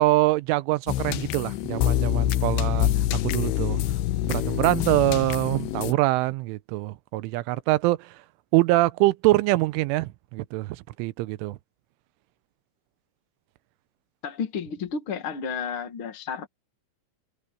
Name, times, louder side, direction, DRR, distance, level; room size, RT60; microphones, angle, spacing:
voice 1, 0.0-3.8 4.2-8.2 8.5-11.6, right 19 dB, 90° right, 3.2 m, -24 dB
sound 1, 0.9-5.9, left 13 dB, 75° left, 2.7 m, -26 dB
voice 2, 14.2-16.5, left 6 dB, 60° left, 1.4 m, -32 dB
omnidirectional pair, 5.4 m